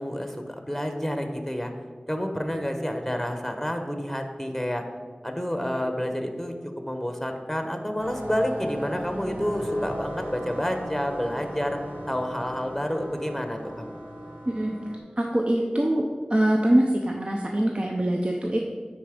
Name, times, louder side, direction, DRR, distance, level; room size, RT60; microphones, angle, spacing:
voice 1, 0.0-1.7 2.1-4.8 5.2-6.5 6.8-11.8 12.1-14.0, equal, ahead, 5 dB, 0.9 m, -29 dB
sound 1, 8.0-15.0, right 1 dB, 80° right, 1.1 m, -38 dB
voice 2, 14.5-14.8 15.2-16.0 16.3-18.6, right 1 dB, 40° right, 0 dB, 0.7 m, -23 dB
9.4 x 4.1 x 5.0 m, 1.5 s
wide cardioid pair, 45°, 3 cm